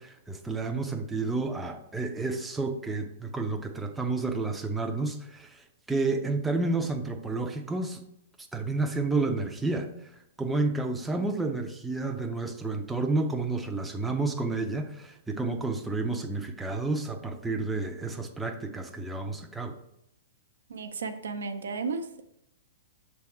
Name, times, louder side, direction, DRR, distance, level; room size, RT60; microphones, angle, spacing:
voice 1, 0.0-8.0 8.5-10.1 10.4-19.7, right 3 dB, 5° right, 4 dB, 0.5 m, -30 dB
voice 2, 20.7-22.3, right 4 dB, 90° right, 7 dB, 0.7 m, -34 dB
6.0 x 3.5 x 4.4 m, 0.77 s
hypercardioid pair, 140°, 0 cm